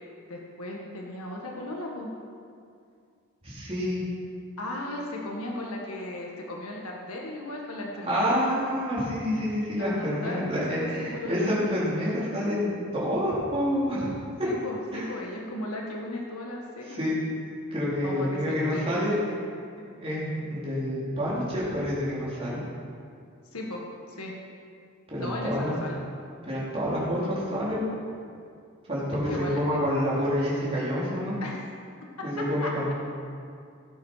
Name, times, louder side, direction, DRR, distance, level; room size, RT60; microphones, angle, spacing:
voice 1, 0.3-2.1 4.6-8.4 9.8-11.8 14.4-17.0 18.0-19.4 23.5-23.8 24.1-24.3 25.2-26.0 29.1-29.6 31.4-31.7 32.2-32.7, left 1 dB, 85° left, -1 dB, 1.8 m, -36 dB
voice 2, 3.4-4.0 8.0-14.1 14.4-14.5 14.9-15.1 16.9-17.2 17.7-19.1 20.0-22.6 25.1-25.8 26.4-27.9 28.9-31.4 32.2-32.9, equal, 25° right, -8 dB, 3.8 m, -28 dB
17.0 x 8.3 x 5.7 m, 2.3 s
head